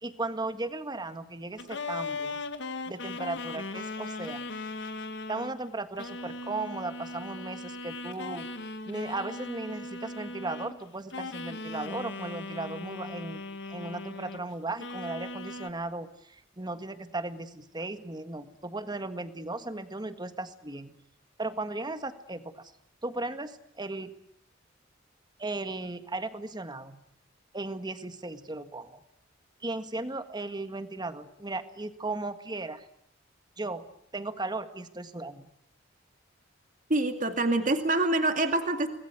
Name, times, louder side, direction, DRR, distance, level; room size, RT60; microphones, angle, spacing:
voice 1, 0.0-2.4 2.9-4.4 5.3-8.5 8.9-13.4 13.7-20.9 21.4-22.7 23.0-24.1 25.4-27.0 27.5-29.0 29.6-32.9 33.6-33.8 34.1-35.5, right 2 dB, 20° right, 9 dB, 1.7 m, -36 dB
sound 1, 1.6-5.5 6.0-10.8 11.1-14.5 14.8-15.7, left 3 dB, 65° left, 2.0 m, -38 dB
voice 2, 36.9-38.9, right 2 dB, 45° right, 6 dB, 2.3 m, -26 dB
26.0 x 20.5 x 9.5 m, 0.73 s
head